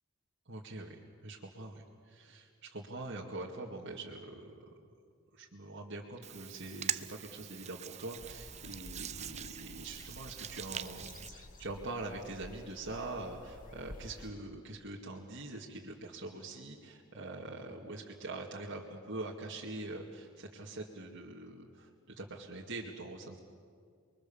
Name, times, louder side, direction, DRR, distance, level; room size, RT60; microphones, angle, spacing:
voice 1, 0.5-4.9 5.3-23.4, right 2 dB, 60° right, -3 dB, 2.3 m, -44 dB
Hands, 6.2-11.3, right 10 dB, 30° right, 0.6 m, -42 dB
sound 1, 8.2-14.3, left 1 dB, 40° left, 1.8 m, -52 dB
29.5 x 23.0 x 7.2 m, 2.1 s
head